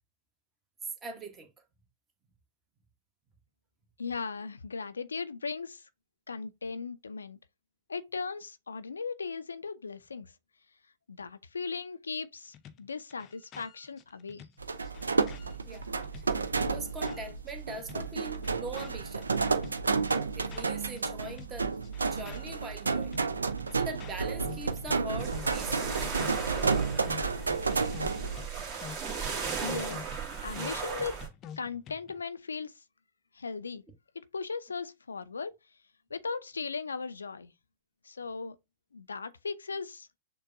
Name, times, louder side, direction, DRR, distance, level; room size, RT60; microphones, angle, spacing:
voice 1, 1.0-1.5 15.7-19.3 20.3-21.7 22.1-23.2 23.7-26.0, right 2 dB, 20° right, 1.1 m, -42 dB
voice 2, 4.0-5.9 6.3-7.4 7.9-10.3 11.1-14.5 29.6-30.2 30.4-31.2 31.6-32.8 33.3-33.8 34.1-35.5 36.1-37.5 38.0-38.6 38.9-40.1, left 4 dB, 85° left, 0.4 m, -37 dB
sound 1, 12.5-17.5 17.8-21.0 21.3-32.2, left 8 dB, 35° left, 0.5 m, -49 dB
sound 2, 14.6-28.5, right 4 dB, 85° right, 0.4 m, -31 dB
sound 3, 25.2-31.3, right 6 dB, 35° right, 1.6 m, -36 dB
6.6 x 2.2 x 2.5 m
hypercardioid pair, 105°, 0 cm